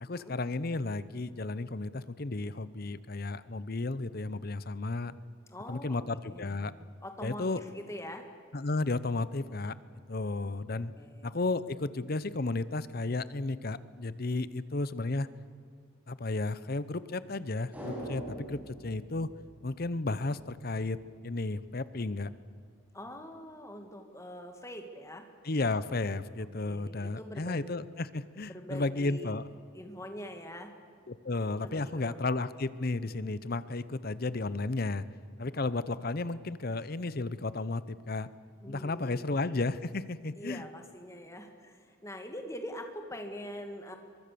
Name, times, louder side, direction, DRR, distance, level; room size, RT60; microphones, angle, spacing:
voice 1, 0.0-5.2 5.7-6.7 7.2-7.6 8.5-9.7 10.1-10.9 11.2-15.3 16.1-19.3 19.6-21.0 21.2-22.3 25.4-29.5 31.1-35.0 35.4-38.3 38.7-40.6, left 2 dB, 45° left, 16 dB, 0.7 m, -33 dB
voice 2, 5.5-8.3 10.7-11.4 22.9-25.3 26.6-27.7 28.4-29.3 29.7-30.7 31.6-32.3 35.5-35.6 38.6-39.3 40.4-44.0, equal, 15° left, 5 dB, 2.2 m, -44 dB
sound 1, 17.7-20.2 20.5-20.6, right 1 dB, 5° right, 6.0 m, -43 dB
23.5 x 23.0 x 6.9 m, 2.3 s
head